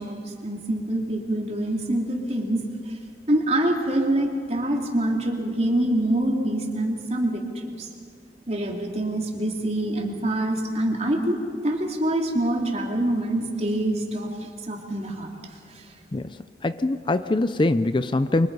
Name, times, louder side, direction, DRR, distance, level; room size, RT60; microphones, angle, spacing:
voice 1, 0.0-2.6 3.3-7.9 8.5-14.3 14.7-15.3, right 1 dB, 35° right, 2 dB, 2.9 m, -25 dB
voice 2, 16.6-18.5, left 2 dB, 30° left, 12 dB, 0.5 m, -23 dB
29.0 x 24.0 x 5.5 m, 2.3 s
head